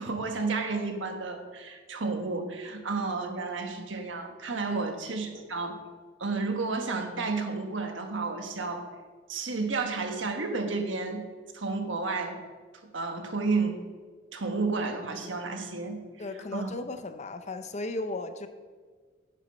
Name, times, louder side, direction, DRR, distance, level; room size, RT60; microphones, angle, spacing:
voice 1, 0.0-5.8 6.2-8.8 9.3-11.3 11.5-12.4 12.9-13.8 14.3-16.7, right 3 dB, 80° right, 5 dB, 1.3 m, -31 dB
voice 2, 16.2-18.5, left 2 dB, 35° left, 9 dB, 0.6 m, -36 dB
10.0 x 7.2 x 5.3 m, 1.5 s
head